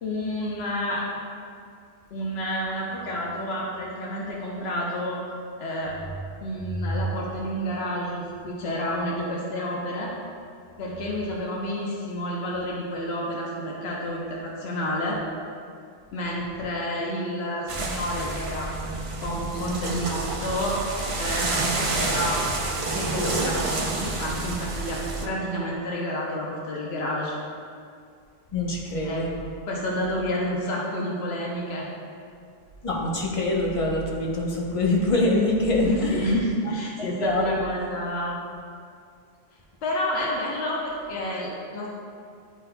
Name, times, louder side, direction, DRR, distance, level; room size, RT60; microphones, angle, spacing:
voice 1, 0.0-1.1 2.1-5.2 5.6-6.0 6.4-10.1 10.8-15.2 16.1-20.8 21.2-22.4 22.9-27.4 29.0-29.3 29.7-31.9 35.9-38.4 39.8-41.9, equal, 80° left, -3 dB, 1.0 m, -29 dB
voice 2, 6.6-7.0 28.5-29.3 32.8-36.3 37.2-37.6, left 2 dB, 35° left, -2 dB, 0.9 m, -24 dB
sound 1, 17.7-25.3, right 3 dB, 40° right, 0.5 m, -29 dB
10.5 x 4.0 x 2.2 m, 2.3 s
omnidirectional pair, 1.0 m